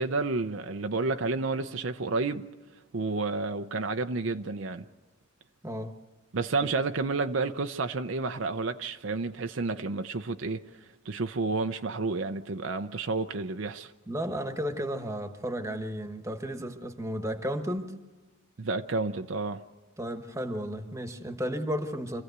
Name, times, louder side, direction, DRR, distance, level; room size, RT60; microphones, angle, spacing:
voice 1, 0.0-2.5 2.9-4.8 6.3-10.6 11.1-13.9 18.6-19.6, right 3 dB, 60° right, 0.6 m, -30 dB
voice 2, 5.6-5.9 14.1-17.9 20.0-22.2, equal, 15° right, 1.2 m, -33 dB
25.5 x 15.5 x 8.0 m
head